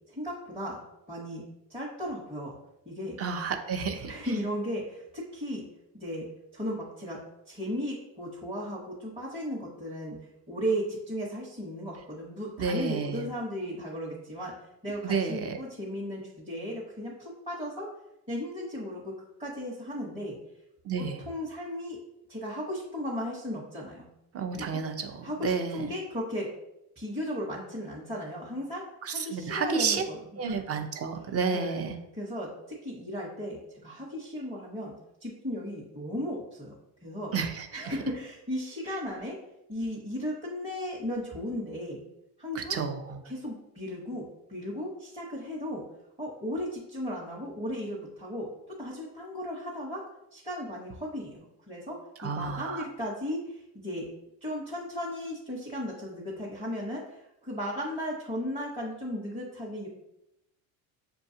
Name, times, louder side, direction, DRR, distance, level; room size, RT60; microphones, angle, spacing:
voice 1, 0.1-0.8 1.1-1.4 1.7-2.5 2.9-3.2 4.1-5.6 5.9-6.3 6.5-7.2 7.5-10.2 10.5-14.5 14.8-17.9 18.3-19.1 19.4-20.4 21.0-22.0 22.3-24.1 24.5-24.8 25.2-26.5 27.0-30.6 31.5-31.8 32.1-34.9 35.2-36.7 37.0-37.3 37.7-39.4 39.7-42.0 42.4-42.8 43.2-45.8 46.2-48.5 48.8-50.1 50.3-51.4 51.7-54.1 54.4-59.9, equal, 15° right, -6 dB, 0.9 m, -35 dB
voice 2, 3.2-4.1 12.6-13.3 15.0-15.6 20.8-21.2 24.3-25.8 29.0-30.0 30.4-32.0 37.3-38.0 42.5-43.2 52.2-52.8, right 5 dB, 35° right, 6 dB, 0.6 m, -31 dB
6.7 x 2.3 x 2.7 m, 0.85 s
supercardioid pair, 95°, 43 cm